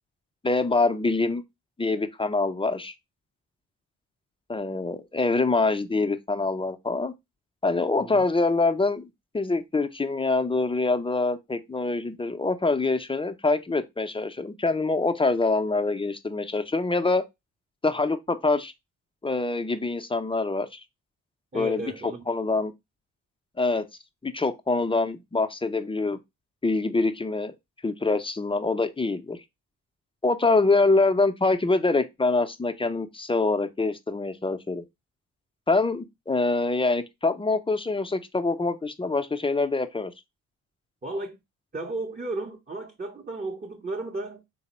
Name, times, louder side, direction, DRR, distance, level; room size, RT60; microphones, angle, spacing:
voice 1, 0.4-1.4 1.8-2.9 4.5-7.1 7.6-9.1 9.3-17.2 17.8-18.7 19.2-20.8 21.5-21.9 22.3-22.7 23.6-23.8 24.2-26.2 26.6-27.5 27.8-29.4 30.2-34.8 35.7-40.1, left 3 dB, 15° left, 0.5 m, -25 dB
voice 2, 21.5-22.3 41.0-41.4 41.7-44.4, right 2 dB, 20° right, 0.7 m, -34 dB
3.5 x 2.0 x 4.1 m
supercardioid pair, 45°, 39 cm